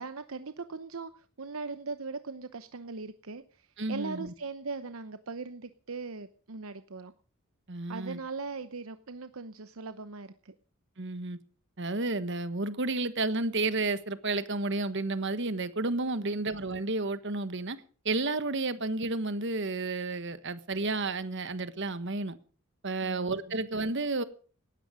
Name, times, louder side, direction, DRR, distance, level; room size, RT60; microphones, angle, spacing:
voice 1, 0.0-7.1 7.9-10.5 16.2-16.5 23.0-23.6, right 4 dB, 70° right, 0.9 m, -40 dB
voice 2, 3.8-4.3 7.7-8.2 11.0-11.4 11.8-17.8 18.0-22.4 22.8-24.2, right 2 dB, 55° right, 1.4 m, -31 dB
18.5 x 13.0 x 5.1 m
head